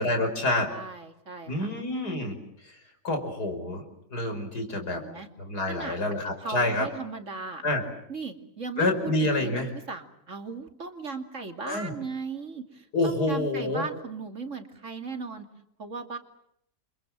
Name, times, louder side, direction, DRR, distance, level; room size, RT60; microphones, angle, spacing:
voice 1, 0.0-0.7 1.5-2.4 2.6-2.8 3.0-3.8 4.1-5.0 5.4-6.9 7.6-7.8 8.8-9.7 11.6-11.9 12.9-13.9, left 2 dB, 85° left, 5 dB, 5.9 m, -27 dB
voice 2, 0.7-1.7 5.0-5.3 5.7-6.0 6.4-7.6 8.1-15.5 15.8-16.2, right 4 dB, 50° right, 6 dB, 3.0 m, -37 dB
29.5 x 25.5 x 7.5 m, 0.73 s
omnidirectional pair, 1.7 m